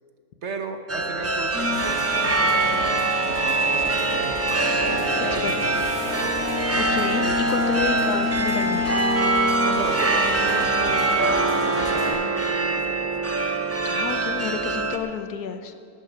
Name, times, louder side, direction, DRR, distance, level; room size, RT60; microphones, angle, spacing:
voice 1, 0.4-3.0 3.3-6.4 9.6-13.0, right 4 dB, 55° right, 7 dB, 1.2 m, -36 dB
sound 1, 0.9-15.0, right 3 dB, 20° right, 0.4 m, -24 dB
sound 2, 1.5-12.1, left 2 dB, 80° right, 5.3 m, -28 dB
Piano, 4.9-11.1, equal, 55° left, 2.1 m, -43 dB
voice 2, 6.8-9.0 13.8-15.7, left 7 dB, 90° left, 9 dB, 1.4 m, -30 dB
12.0 x 8.9 x 9.9 m, 2.4 s
omnidirectional pair, 1.6 m